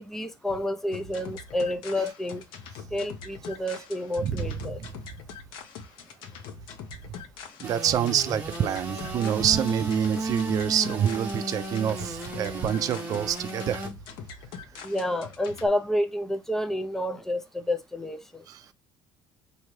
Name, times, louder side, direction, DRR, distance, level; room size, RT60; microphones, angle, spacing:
voice 1, 0.0-2.4 2.9-4.8 14.8-18.4, left 1 dB, 5° left, 0.5 m, -29 dB
sound 1, 0.9-15.7, left 5 dB, 70° left, 0.8 m, -43 dB
voice 2, 4.2-4.9 7.6-13.9 14.8-14.9 18.5-18.7, right 9 dB, 45° right, 0.5 m, -27 dB
Engine / Sawing, 7.6-13.9, right 2 dB, 20° right, 1.0 m, -34 dB
4.8 x 2.7 x 3.1 m
cardioid pair, 145°, 9 cm